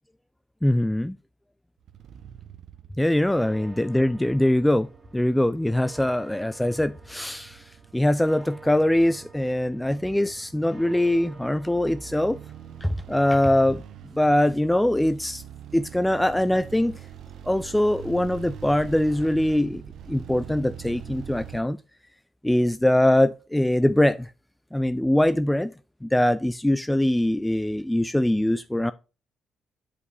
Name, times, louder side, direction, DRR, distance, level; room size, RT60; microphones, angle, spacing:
voice 1, 0.6-1.2 3.0-4.9 5.1-7.6 7.9-12.4 12.8-13.8 14.1-15.4 15.7-17.0 17.4-19.8 20.1-21.8 22.4-24.3 24.7-25.7 26.0-28.9, left 1 dB, 5° left, 0.3 m, -22 dB
sound 1, 1.8-21.6, right 9 dB, 70° right, 0.7 m, -44 dB
sound 2, 3.0-13.7, right 3 dB, 15° right, 2.1 m, -50 dB
8.2 x 5.0 x 3.3 m
cardioid pair, 90°, 0 cm